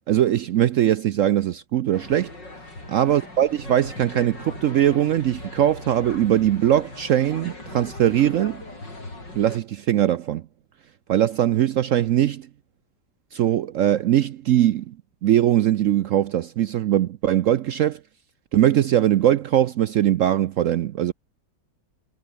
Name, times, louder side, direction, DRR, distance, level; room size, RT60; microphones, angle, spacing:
voice 1, 0.1-2.3 2.9-8.6 9.4-10.4 11.1-12.5 13.3-15.0 15.2-18.0 18.5-21.1, right 11 dB, 75° right, 0.7 m, -21 dB
sound 1, 1.9-9.6, left 2 dB, 75° left, 8.2 m, -39 dB
omnidirectional pair, 2.0 m